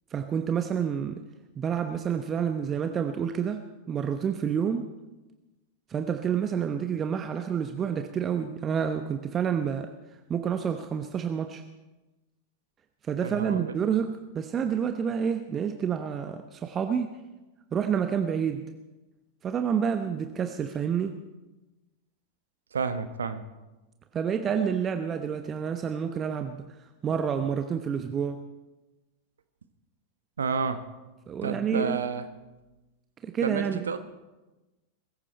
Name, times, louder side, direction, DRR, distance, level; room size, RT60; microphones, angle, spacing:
voice 1, 0.1-1.2 1.6-4.9 5.9-9.9 10.3-11.6 13.1-17.2 17.7-18.6 19.4-21.2 24.1-26.6 27.0-28.4 31.3-32.0 33.2-33.9, right 7 dB, 25° right, 7 dB, 0.9 m, -28 dB
voice 2, 13.2-13.8 22.7-23.4 30.4-30.8 31.4-32.3 33.4-34.0, right 5 dB, 70° right, 10 dB, 1.2 m, -30 dB
22.0 x 15.0 x 4.3 m, 1.1 s
figure-of-eight pair, 90°, 0 cm